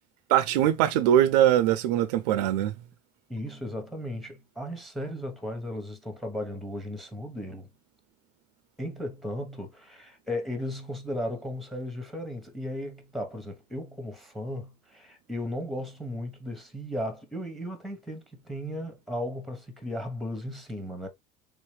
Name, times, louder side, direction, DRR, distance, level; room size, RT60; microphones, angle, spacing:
voice 1, 0.3-2.7, right 11 dB, 80° right, 0.5 m, -22 dB
voice 2, 3.3-7.7 8.8-21.1, left 1 dB, ahead, 1.0 m, -35 dB
3.6 x 2.9 x 3.2 m
supercardioid pair, 115°, 20 cm